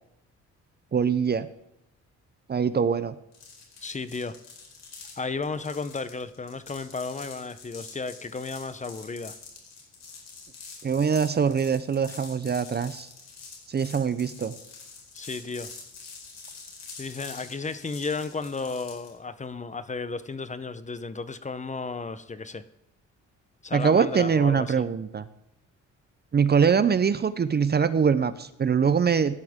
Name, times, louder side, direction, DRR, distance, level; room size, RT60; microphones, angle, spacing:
voice 1, 0.9-1.5 2.5-3.2 10.8-13.1 13.7-14.5 23.7-25.3 26.3-29.3, right 6 dB, 35° right, 14 dB, 0.7 m, -23 dB
sound 1, 3.3-19.1, left 4 dB, 60° left, 4.6 m, -46 dB
voice 2, 3.8-4.3 5.2-9.4 15.1-15.7 17.0-22.6 23.6-24.9, left 4 dB, 25° left, 13 dB, 0.9 m, -34 dB
17.0 x 11.5 x 3.7 m, 0.83 s
cardioid pair, 90°, 30 cm